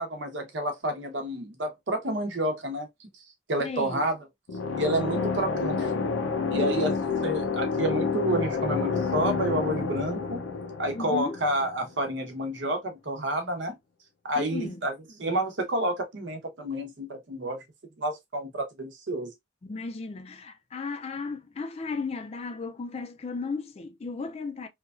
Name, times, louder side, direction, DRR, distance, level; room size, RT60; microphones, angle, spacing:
voice 1, 0.0-3.1 3.5-4.2 4.8-5.9 6.5-6.9 7.2-10.4 10.8-13.8 14.2-14.9 15.2-17.6 18.0-19.3, right 1 dB, 70° right, 0.8 m, -29 dB
voice 2, 3.6-4.0 6.4-7.2 10.9-11.4 14.4-14.8 19.6-24.7, left 4 dB, 30° left, 0.3 m, -35 dB
sound 1, 4.5-12.1, left 5 dB, 90° left, 0.5 m, -29 dB
3.0 x 2.3 x 2.3 m
head